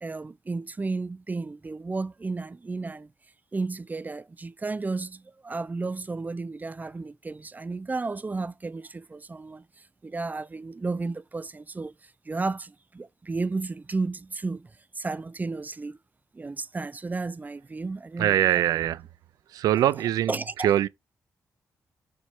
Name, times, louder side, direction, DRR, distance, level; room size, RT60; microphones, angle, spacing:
voice 1, 0.0-3.1 3.5-9.6 10.0-14.7 14.9-16.0 16.3-18.4 20.3-20.7, right 3 dB, 25° right, 0.6 m, -33 dB
voice 2, 18.2-19.1 19.5-20.9, right 12 dB, 85° right, 0.4 m, -23 dB
7.0 x 3.1 x 4.4 m
supercardioid pair, 60°, 6 cm